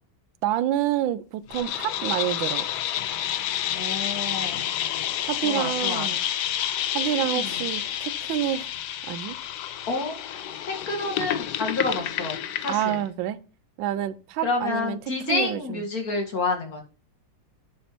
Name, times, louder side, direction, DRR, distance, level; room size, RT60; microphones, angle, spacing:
voice 1, 0.4-2.6 5.2-6.2 6.9-8.7 9.1-9.4 12.7-13.4 13.8-15.0 15.3-15.8, right 11 dB, 90° right, 1.4 m, -28 dB
sound 1, 1.5-13.0, left 11 dB, 70° left, 1.2 m, -29 dB
voice 2, 3.7-4.6 5.4-6.1 7.2-7.6 9.9-13.0 14.4-16.8, left 3 dB, 50° left, 2.3 m, -29 dB
10.0 x 5.2 x 3.0 m
omnidirectional pair, 2.0 m